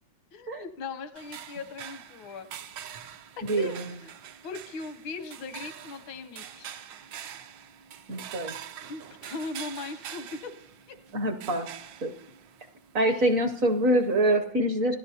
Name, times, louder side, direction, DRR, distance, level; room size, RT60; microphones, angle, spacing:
voice 1, 0.3-2.5 3.6-4.1 4.4-6.8 8.8-10.5 10.9-11.0 13.1-13.4 14.1-14.4, left 4 dB, 85° left, 10 dB, 1.6 m, -39 dB
sound 1, 1.2-14.4, right 9 dB, 75° right, 1.4 m, -45 dB
voice 2, 8.1-8.5 11.1-11.7 12.0-12.1 12.9-14.9, right 1 dB, 55° right, 6 dB, 1.0 m, -25 dB
25.5 x 17.0 x 2.8 m, 0.74 s
omnidirectional pair, 2.1 m